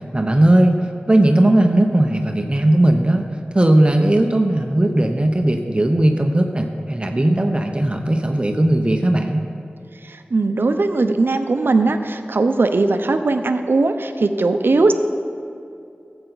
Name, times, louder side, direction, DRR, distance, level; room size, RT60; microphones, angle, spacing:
voice 1, 0.1-3.3 3.5-9.5, right 1 dB, 30° right, 4 dB, 0.7 m, -17 dB
voice 2, 10.0-14.9, right 3 dB, 75° right, 8 dB, 0.6 m, -19 dB
14.0 x 7.9 x 4.0 m, 2.5 s
wide cardioid pair, 60°, 4 cm